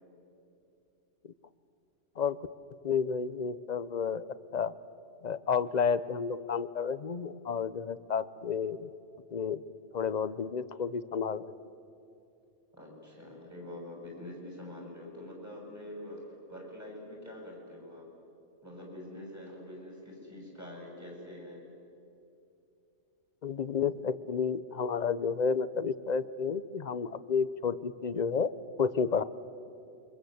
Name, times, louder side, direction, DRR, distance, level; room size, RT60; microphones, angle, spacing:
voice 1, 2.8-4.3 4.5-4.7 5.2-8.9 9.3-9.6 9.9-11.5 23.4-28.5 28.8-29.2, left 6 dB, 40° left, 15 dB, 0.8 m, -31 dB
voice 2, 12.7-18.1 18.6-21.6, left 1 dB, 15° right, 0 dB, 7.2 m, -45 dB
28.5 x 24.5 x 8.0 m, 2.7 s
omnidirectional pair, 1.2 m